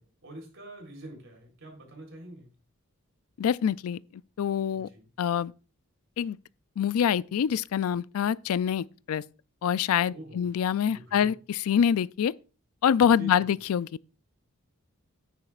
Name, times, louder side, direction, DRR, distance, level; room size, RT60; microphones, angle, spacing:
voice 1, 0.0-2.5 4.7-5.1 10.1-10.5 10.9-11.3 13.2-13.6, right 1 dB, 60° right, 3.6 m, -45 dB
voice 2, 3.4-4.9 5.2-5.5 6.2-6.4 6.8-9.2 9.6-12.3 12.8-13.9, left 8 dB, 80° left, 0.3 m, -25 dB
10.0 x 9.7 x 2.4 m
head